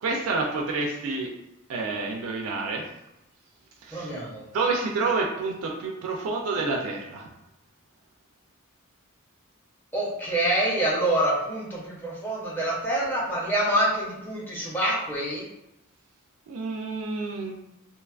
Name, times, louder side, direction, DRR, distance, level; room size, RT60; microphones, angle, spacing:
voice 1, 0.0-1.3 1.7-2.8 3.8-4.1 4.5-7.3 16.5-17.6, right 3 dB, 80° right, 0 dB, 0.3 m, -28 dB
voice 2, 3.9-4.4 9.9-15.4, right 1 dB, 10° left, -5 dB, 0.6 m, -26 dB
2.7 x 2.2 x 2.3 m, 0.88 s
head